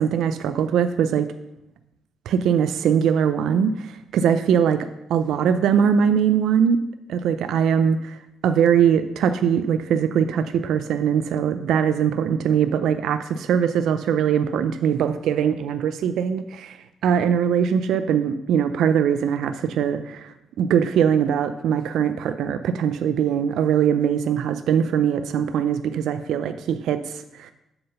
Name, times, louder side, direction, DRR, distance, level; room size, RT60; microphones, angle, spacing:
voice 1, 0.0-1.3 2.3-6.8 7.1-16.8 17.0-27.5, right 8 dB, 80° right, 10 dB, 0.4 m, -21 dB
7.7 x 3.8 x 6.7 m, 0.88 s
cardioid pair, 90°, 0 cm